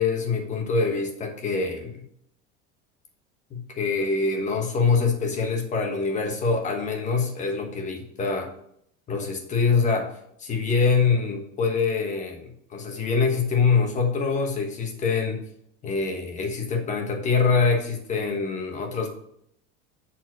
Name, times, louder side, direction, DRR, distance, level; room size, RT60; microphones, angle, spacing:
voice 1, 0.0-2.0 3.5-8.5 9.1-10.1 10.4-15.4 15.8-19.1, left 4 dB, 25° left, 2 dB, 1.3 m, -24 dB
7.1 x 4.3 x 6.0 m, 0.72 s
cardioid pair, 165°, 29 cm